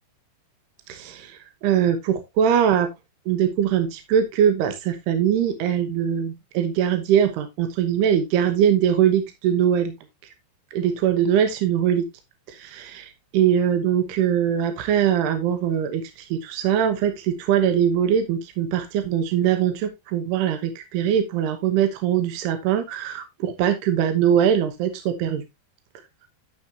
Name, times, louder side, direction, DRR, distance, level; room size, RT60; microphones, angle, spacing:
voice 1, 0.9-2.9 3.3-9.9 10.7-12.1 12.5-25.4, right 9 dB, 70° right, 8 dB, 2.9 m, -22 dB
11.0 x 7.3 x 2.8 m, 0.21 s
omnidirectional pair, 5.2 m